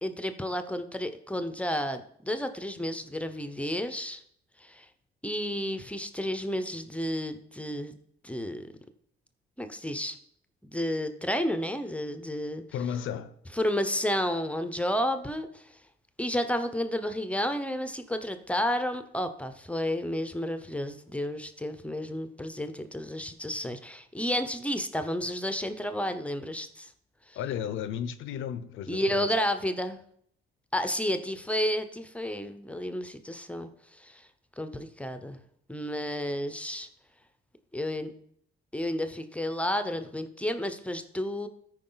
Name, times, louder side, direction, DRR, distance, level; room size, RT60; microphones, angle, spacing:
voice 1, 0.0-4.2 4.6-4.9 5.2-7.9 8.2-8.7 9.6-10.2 10.6-12.6 13.5-15.7 16.2-26.9 27.3-27.4 28.9-30.0 30.7-34.3 34.6-35.4 35.7-36.9 37.7-38.1 38.7-41.5, equal, 5° left, 0.7 m, -31 dB
voice 2, 12.7-13.4 27.3-29.3, left 8 dB, 80° left, 0.7 m, -34 dB
13.0 x 4.8 x 3.9 m
cardioid pair, 90°, 20 cm